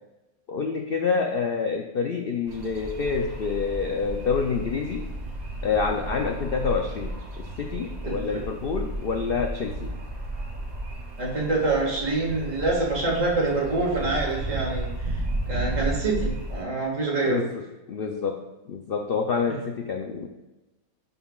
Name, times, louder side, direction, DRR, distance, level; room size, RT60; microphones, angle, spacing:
voice 1, 0.5-5.1 5.6-9.9 17.2-18.4 18.7-20.3, left 5 dB, 60° left, 3 dB, 0.6 m, -27 dB
sound 1, 2.5-16.6, right 1 dB, 35° right, 0.8 m, -33 dB
voice 2, 11.2-15.2 15.5-17.4 19.5-19.6, right 3 dB, 60° right, -3 dB, 2.3 m, -26 dB
11.0 x 5.6 x 2.4 m, 1.0 s
omnidirectional pair, 1.5 m